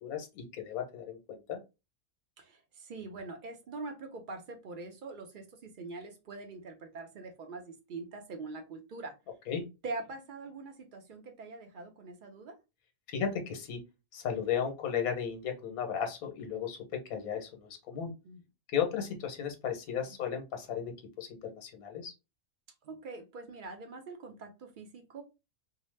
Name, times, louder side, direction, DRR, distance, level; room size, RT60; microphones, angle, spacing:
voice 1, 0.0-1.6 9.5-9.6 13.1-13.8 14.1-16.8 17.1-18.1 18.7-20.9 21.2-22.1, left 8 dB, 80° left, 4 dB, 1.2 m, -35 dB
voice 2, 2.4-9.1 9.8-12.6 18.2-18.4 20.1-20.2 22.8-25.2, right 3 dB, 75° right, 4 dB, 0.4 m, -43 dB
2.7 x 2.1 x 3.1 m, 0.26 s
omnidirectional pair, 1.5 m